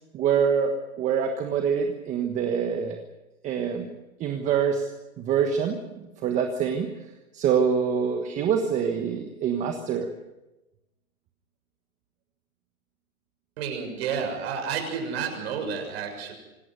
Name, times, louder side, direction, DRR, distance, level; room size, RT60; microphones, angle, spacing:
voice 1, 0.1-3.0 3.4-3.9 4.2-4.9 5.2-5.8 6.2-6.9 7.3-10.1, right 7 dB, 15° right, 4 dB, 1.4 m, -25 dB
voice 2, 13.6-16.3, right 6 dB, 50° right, 3 dB, 7.0 m, -30 dB
26.0 x 12.0 x 9.5 m, 1.0 s
hypercardioid pair, 150°, 42 cm